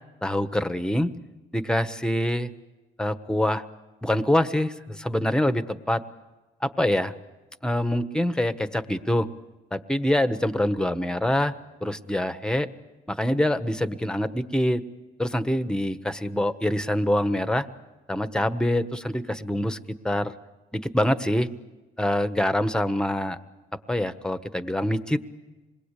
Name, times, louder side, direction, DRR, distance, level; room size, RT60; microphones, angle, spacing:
voice 1, 0.2-1.1 1.5-2.5 3.0-3.6 4.0-6.0 6.6-7.1 7.6-9.3 9.7-11.5 11.8-12.7 13.1-14.8 15.2-17.7 18.1-19.8 20.0-20.3 20.7-21.5 22.0-23.4 23.9-25.2, left 1 dB, 5° left, 10 dB, 1.4 m, -25 dB
26.5 x 21.5 x 8.4 m, 1.1 s
cardioid pair, 90°, 20 cm